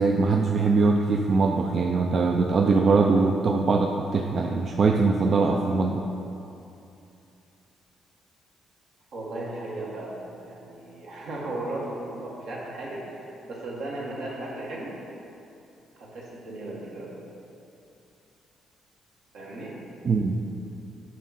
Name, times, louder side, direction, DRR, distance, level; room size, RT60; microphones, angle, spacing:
voice 1, 0.0-6.1 20.0-20.4, right 4 dB, 50° right, 2 dB, 0.4 m, -22 dB
voice 2, 9.1-14.9 16.0-17.1 19.3-19.7, right 2 dB, 75° right, -5 dB, 1.8 m, -36 dB
7.2 x 6.1 x 4.3 m, 2.7 s
cardioid pair, 90°, 0 cm